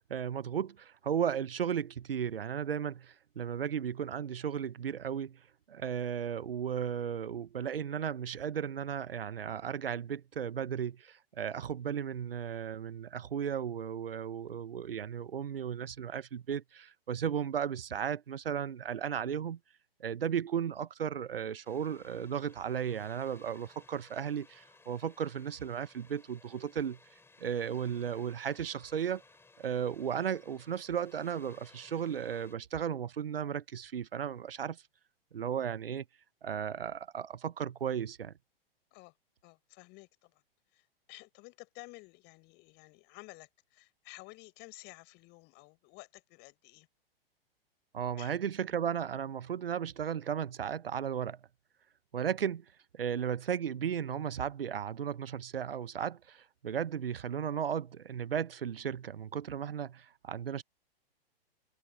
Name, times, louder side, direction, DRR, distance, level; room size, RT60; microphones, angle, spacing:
voice 1, 0.1-5.4 5.7-19.6 20.0-27.0 27.4-29.2 29.6-34.8 35.3-36.0 36.4-38.3 47.9-51.4 52.1-52.6 52.9-60.6, right 8 dB, 70° right, 1.1 m, -35 dB
Water, 21.6-32.6, left 3 dB, 10° left, 6.9 m, -60 dB
voice 2, 39.4-40.4 40.7-46.9 48.2-48.3, left 24 dB, 35° left, 5.9 m, -53 dB
figure-of-eight pair, 105°, 30 cm